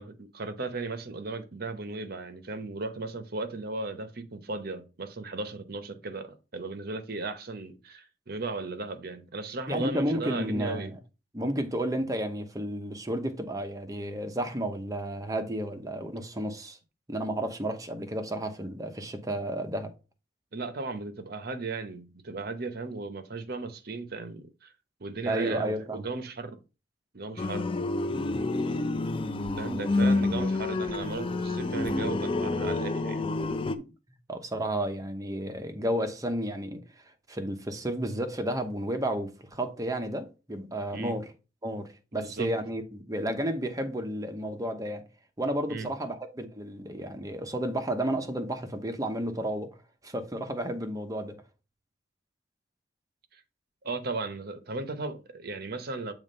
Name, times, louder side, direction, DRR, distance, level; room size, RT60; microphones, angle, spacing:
voice 1, 0.0-10.9 20.5-24.7 25.0-26.6 27.1-27.7 29.6-33.3 40.9-41.1 42.1-42.5 45.7-45.9 53.3-53.4 53.8-56.1, right 3 dB, 55° right, 0.9 m, -36 dB
voice 2, 9.7-11.0 11.3-16.8 17.1-19.9 25.3-26.0 30.0-30.1 30.4-30.5 33.7-33.9 34.3-41.3 41.6-45.0 45.4-49.7 50.0-51.4, right 1 dB, 20° right, 0.9 m, -32 dB
sound 1, 27.4-33.7, left 2 dB, 30° left, 0.5 m, -28 dB
7.2 x 3.2 x 5.3 m
head